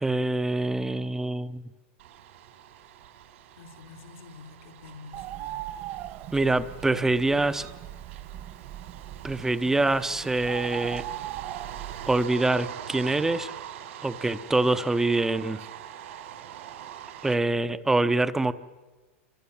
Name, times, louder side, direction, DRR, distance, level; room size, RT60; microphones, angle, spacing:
voice 1, 0.0-1.6 6.3-7.7 9.2-11.0 12.1-13.5 14.0-15.6 17.2-18.5, right 2 dB, 5° right, 12 dB, 0.8 m, -25 dB
sound 1, 2.0-17.4, right 10 dB, 75° right, 3.9 m, -44 dB
voice 2, 3.6-5.7 6.4-7.1, left 5 dB, 75° left, 5 dB, 4.1 m, -48 dB
Bird, 5.1-12.2, right 13 dB, 40° right, 1.5 m, -39 dB
28.5 x 24.0 x 7.2 m, 1.3 s
supercardioid pair, 155°, 7 cm